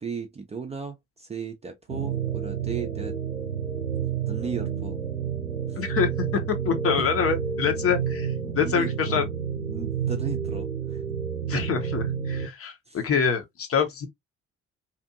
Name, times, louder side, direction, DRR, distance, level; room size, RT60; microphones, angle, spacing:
voice 1, 0.0-3.1 3.9-5.0 5.7-5.8 7.0-7.1 8.4-9.3 9.7-11.0 12.9-13.0, right 5 dB, 15° right, 0.5 m, -36 dB
sound 1, 1.9-12.5, right 7 dB, 90° right, 0.6 m, -30 dB
voice 2, 5.8-9.2 11.5-14.1, left 6 dB, 35° left, 0.8 m, -26 dB
2.8 x 2.5 x 2.4 m
figure-of-eight pair, 45°, 39 cm